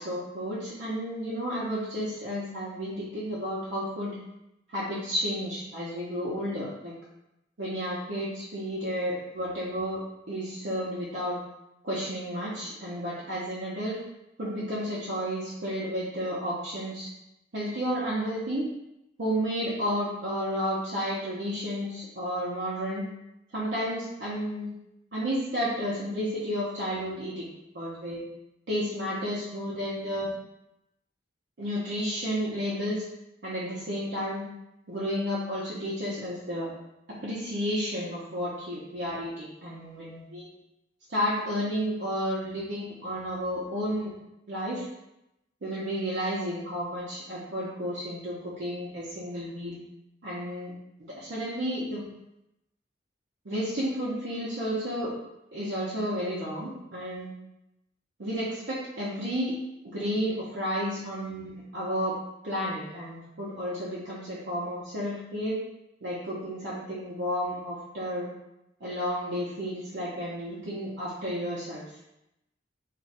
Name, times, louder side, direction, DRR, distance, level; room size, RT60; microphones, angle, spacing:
voice 1, 0.0-4.1 4.7-6.9 7.6-10.0 10.3-11.4 11.8-14.0 14.4-17.1 17.5-18.7 19.2-23.1 23.5-24.7 25.1-27.5 27.7-28.2 28.7-30.3 31.6-33.0 33.4-34.4 34.9-36.7 37.2-40.5 41.1-44.1 44.5-44.8 45.6-49.8 50.2-50.7 51.0-52.0 53.5-55.1 55.5-57.3 58.2-59.6 59.8-62.1 62.4-65.6 66.0-68.3 68.8-71.8, equal, 70° right, -8 dB, 0.7 m, -32 dB
2.5 x 2.3 x 4.0 m, 0.87 s
head